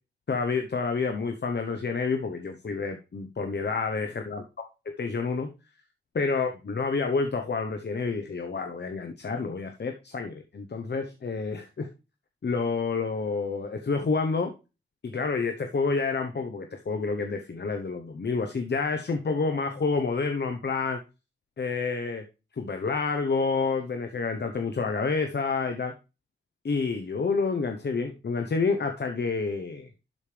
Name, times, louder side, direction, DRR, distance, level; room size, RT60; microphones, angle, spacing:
voice 1, 0.3-4.4 4.9-5.5 6.1-11.9 12.4-14.5 15.0-21.0 21.6-22.2 22.6-25.9 26.6-29.9, left 4 dB, 55° left, 6 dB, 1.0 m, -29 dB
12.0 x 5.2 x 3.4 m, 0.30 s
cardioid pair, 50°, 21 cm